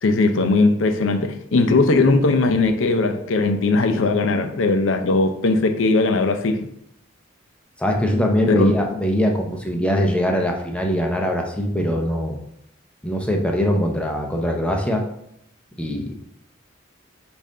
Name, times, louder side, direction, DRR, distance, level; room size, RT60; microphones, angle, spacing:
voice 1, 0.0-6.7 8.5-8.7, left 3 dB, 75° left, 7 dB, 0.5 m, -19 dB
voice 2, 7.8-12.4 13.0-15.0 15.8-16.2, equal, 5° left, 2 dB, 0.6 m, -22 dB
5.3 x 2.6 x 3.7 m, 0.76 s
head